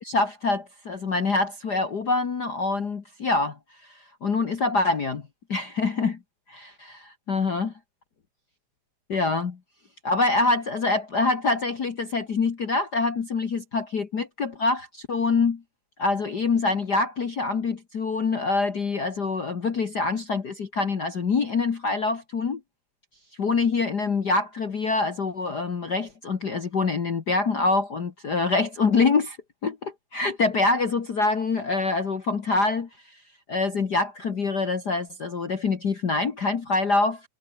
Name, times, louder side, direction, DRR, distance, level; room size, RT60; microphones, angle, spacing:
voice 1, 0.0-3.6 4.2-5.2 5.5-6.2 6.5-7.7 9.1-9.6 10.0-15.6 16.0-22.6 23.4-29.4 29.6-32.9 33.5-37.2, left 3 dB, 40° left, 1.9 m, -25 dB
omnidirectional pair, 3.4 m